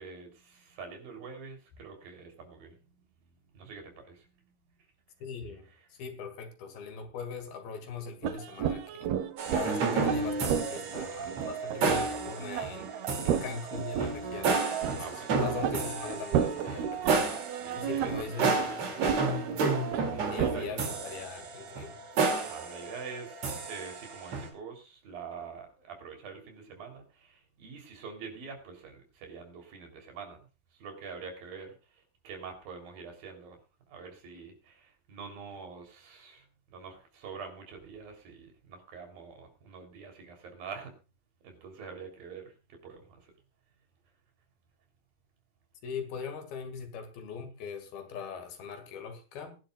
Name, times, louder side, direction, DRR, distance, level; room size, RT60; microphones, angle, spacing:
voice 1, 0.0-2.8 3.5-4.3 15.0-15.3 16.8-16.9 17.4-18.1 20.0-21.0 22.4-30.4 30.7-33.6 33.9-40.9 41.4-43.3, right 5 dB, 70° right, 5.2 m, -45 dB
voice 2, 5.2-5.7 6.0-9.1 9.5-14.5 14.9-17.3 17.8-19.2 19.5-19.6 20.2-22.0 45.8-49.6, left 5 dB, 75° left, 4.0 m, -41 dB
sound 1, 8.2-20.7, right 8 dB, 90° right, 3.1 m, -33 dB
sound 2, 9.4-24.5, right 4 dB, 50° right, 3.5 m, -32 dB
23.0 x 11.0 x 2.4 m
omnidirectional pair, 4.3 m